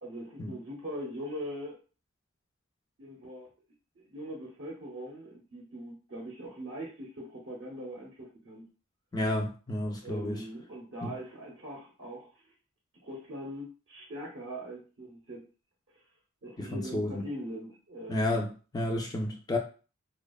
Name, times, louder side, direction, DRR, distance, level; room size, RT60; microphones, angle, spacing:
voice 1, 0.0-1.8 3.0-3.5 4.1-8.7 10.0-12.5 13.0-15.4 16.4-18.4, equal, 60° right, -1 dB, 0.6 m, -41 dB
voice 2, 9.1-10.4 11.0-11.1 16.6-17.2 18.1-18.5 18.7-19.6, left 1 dB, 20° left, 2 dB, 0.3 m, -31 dB
2.7 x 2.1 x 2.2 m, 0.35 s
head